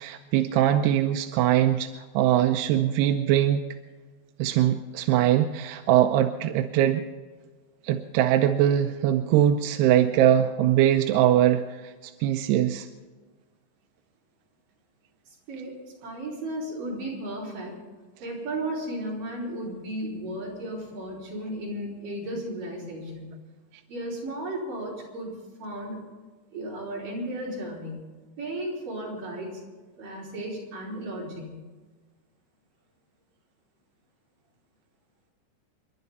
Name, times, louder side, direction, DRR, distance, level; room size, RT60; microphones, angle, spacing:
voice 1, 0.0-3.6 4.4-7.0 7.8-12.9, right 11 dB, 80° right, 6 dB, 2.5 m, -22 dB
voice 2, 15.3-15.7 16.0-17.8 18.2-23.3 23.9-25.3 25.6-26.0 26.5-28.1 28.4-29.6 30.0-31.6, right 1 dB, 50° right, -5 dB, 6.3 m, -34 dB
29.5 x 11.5 x 4.1 m, 1.3 s
omnidirectional pair, 5.3 m